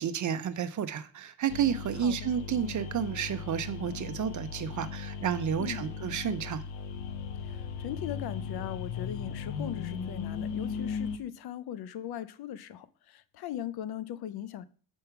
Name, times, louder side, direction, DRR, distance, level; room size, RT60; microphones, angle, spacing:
voice 1, 0.0-6.6, right 8 dB, 45° right, 0.5 m, -31 dB
sound 1, 1.5-11.2, left 6 dB, 85° left, 0.9 m, -37 dB
voice 2, 5.6-5.9 7.4-14.7, left 10 dB, 60° left, 0.5 m, -39 dB
5.3 x 4.5 x 5.7 m
cardioid pair, 125°, 44 cm